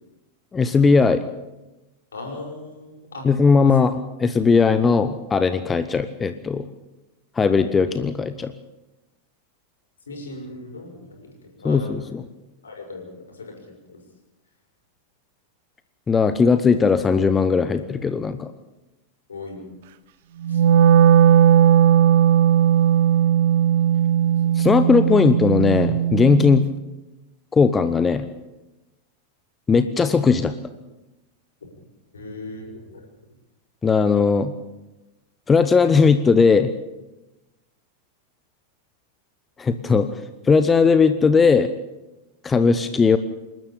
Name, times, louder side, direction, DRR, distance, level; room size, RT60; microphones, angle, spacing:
voice 1, 0.5-1.2 3.2-3.9 4.2-6.6 7.4-8.5 11.6-12.2 16.1-18.5 24.6-26.6 27.5-28.2 29.7-30.5 33.8-34.5 35.5-36.7 39.6-40.2 40.5-41.7 42.4-43.2, left 5 dB, 15° left, 11 dB, 1.0 m, -18 dB
voice 2, 2.1-3.3 3.6-3.8 10.1-12.1 12.6-14.0 19.3-19.7 20.5-20.6 21.8-22.2 24.2-24.7 32.1-33.0, left 2 dB, 70° left, 2 dB, 6.5 m, -38 dB
Wind instrument woodwind instrument, 20.4-26.6, right 9 dB, 55° right, 1.1 m, -17 dB
28.0 x 12.5 x 8.7 m, 1.0 s
figure-of-eight pair, 90°, 0 cm